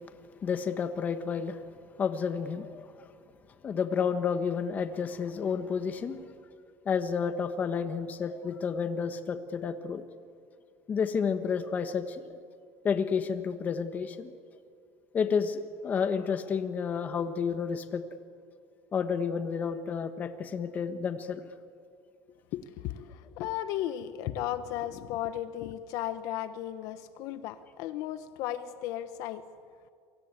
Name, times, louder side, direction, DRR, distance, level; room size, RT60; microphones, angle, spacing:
voice 1, 0.4-1.6 2.0-2.9 3.6-6.2 6.8-10.0 10.9-12.4 12.8-14.3 15.1-18.0 18.9-21.4, left 6 dB, 25° left, 9 dB, 1.5 m, -30 dB
voice 2, 22.5-29.5, left 12 dB, 60° left, 11 dB, 1.1 m, -35 dB
27.5 x 24.0 x 8.3 m, 2.2 s
cardioid pair, 165°, 6 cm